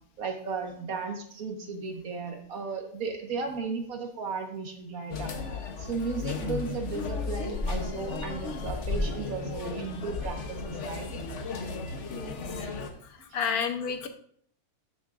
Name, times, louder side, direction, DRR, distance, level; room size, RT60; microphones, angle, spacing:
voice 1, 0.2-5.3 5.8-11.1 12.5-12.8, right 4 dB, 75° right, 3 dB, 1.8 m, -35 dB
sound 1, 5.1-12.9, left 3 dB, 55° left, 1.2 m, -34 dB
voice 2, 12.1-12.4 13.3-14.1, left 6 dB, 90° left, 7 dB, 1.4 m, -30 dB
12.5 x 6.6 x 2.5 m, 0.62 s
omnidirectional pair, 1.5 m